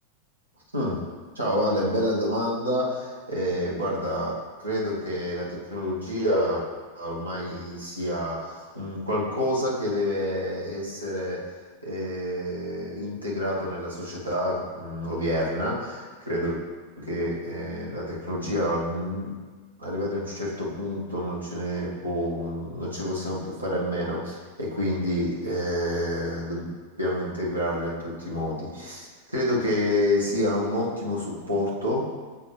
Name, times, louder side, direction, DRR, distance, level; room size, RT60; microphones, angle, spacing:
voice 1, 1.3-6.6 6.9-11.5 11.8-16.6 17.0-19.3 19.8-26.7 27.0-32.0, left 1 dB, 85° right, -6 dB, 1.5 m, -28 dB
8.1 x 3.8 x 3.1 m, 1.4 s
figure-of-eight pair, 90°, 0 cm